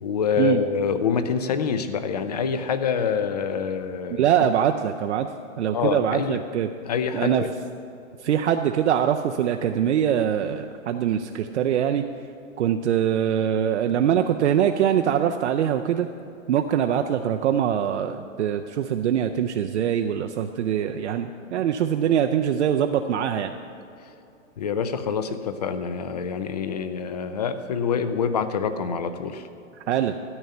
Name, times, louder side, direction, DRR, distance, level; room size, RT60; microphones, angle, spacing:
voice 1, 0.0-4.5 5.7-6.4 6.9-7.5 24.6-29.5, left 6 dB, 35° left, 11 dB, 0.5 m, -26 dB
voice 2, 4.1-5.3 5.6-6.7 7.1-7.4 8.2-12.1 12.6-16.1 16.5-23.5 29.9-30.2, right 9 dB, 60° right, 5 dB, 0.6 m, -23 dB
13.0 x 5.5 x 9.1 m, 2.7 s
hypercardioid pair, 170°, 39 cm